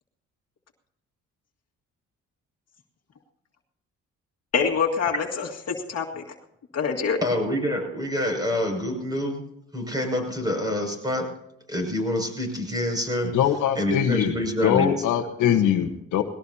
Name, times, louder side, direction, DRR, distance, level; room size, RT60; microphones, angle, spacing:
voice 1, 4.5-6.2 6.7-7.2, left 6 dB, 55° left, 1 dB, 2.0 m, -25 dB
voice 2, 7.2-9.4 9.7-11.2 11.7-13.3 13.8-14.9, left 1 dB, 15° right, 2 dB, 6.3 m, -26 dB
voice 3, 13.3-14.4 14.6-16.2, left 9 dB, 85° left, 7 dB, 1.2 m, -22 dB
20.5 x 17.5 x 2.8 m, 0.82 s
cardioid pair, 90°, 30 cm